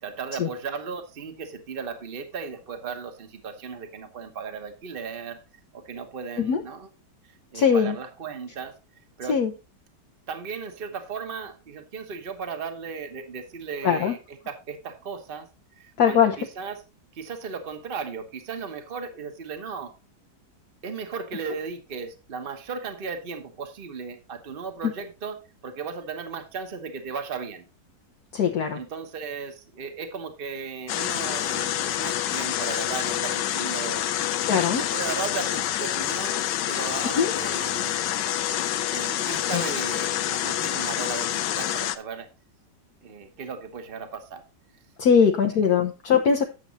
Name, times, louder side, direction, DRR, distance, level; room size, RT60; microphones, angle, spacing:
voice 1, 0.0-5.4 5.7-6.9 7.5-8.8 9.2-9.4 10.3-15.5 15.7-16.8 17.1-19.9 20.8-27.7 28.7-34.2 34.8-38.1 38.9-42.3 43.0-44.4 45.5-45.6, right 5 dB, 35° right, 7 dB, 1.2 m, -36 dB
voice 2, 7.5-8.0 9.3-9.5 13.8-14.1 16.0-16.3 24.8-24.9 28.3-28.8 34.4-34.8 37.0-37.3 39.5-39.6 45.0-46.4, left 7 dB, 65° left, 4 dB, 1.4 m, -21 dB
sound 1, 30.9-42.0, left 12 dB, 90° left, 1.3 m, -27 dB
9.4 x 6.9 x 4.0 m, 0.29 s
omnidirectional pair, 1.9 m